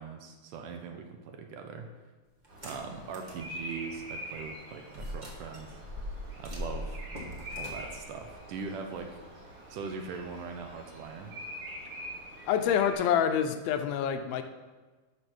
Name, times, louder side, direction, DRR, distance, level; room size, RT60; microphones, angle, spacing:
voice 1, 0.0-1.9 2.6-5.8 6.4-7.0 7.5-9.2 9.7-11.3, right 5 dB, 70° right, 4 dB, 2.2 m, -41 dB
sound 1, 2.4-3.4 3.9-4.0 4.9-9.2, left 1 dB, 20° right, 1.2 m, -41 dB
Bird vocalization bird call bird song, 2.5-12.9, equal, 40° right, 3.4 m, -45 dB
voice 2, 12.5-14.4, left 8 dB, 85° left, 8 dB, 2.6 m, -27 dB
12.5 x 6.5 x 6.1 m, 1.3 s
omnidirectional pair, 4.2 m